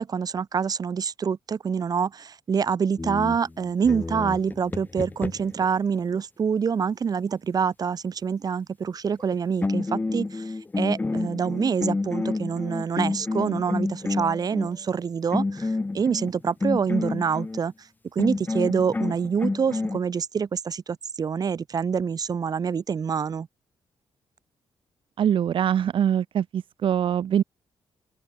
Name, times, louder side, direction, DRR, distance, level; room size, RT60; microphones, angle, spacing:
voice 1, 0.0-17.7 18.1-23.5, right 6 dB, 40° right, 3.6 m, -26 dB
sound 1, 3.0-5.7 9.2-9.3 9.6-14.7 15.3-17.6 18.2-20.0, left 3 dB, 20° left, 3.8 m, -29 dB
voice 2, 25.2-27.4, right 9 dB, 60° right, 1.9 m, -23 dB
open air
wide cardioid pair, 145°, 10 cm